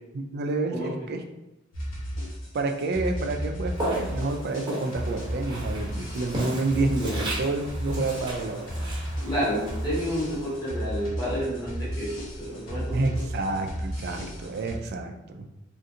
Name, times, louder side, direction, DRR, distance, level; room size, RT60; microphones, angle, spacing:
voice 1, 0.1-1.2 2.5-8.7 12.9-15.5, right 3 dB, 55° right, 4 dB, 0.4 m, -29 dB
sound 1, 1.7-14.8, equal, 85° left, 1.0 m, -34 dB
Walk footsteps, 3.7-10.8, equal, 20° right, 0.9 m, -36 dB
voice 2, 9.2-13.2, equal, 20° left, -8 dB, 1.2 m, -30 dB
3.7 x 2.5 x 2.7 m, 0.94 s
head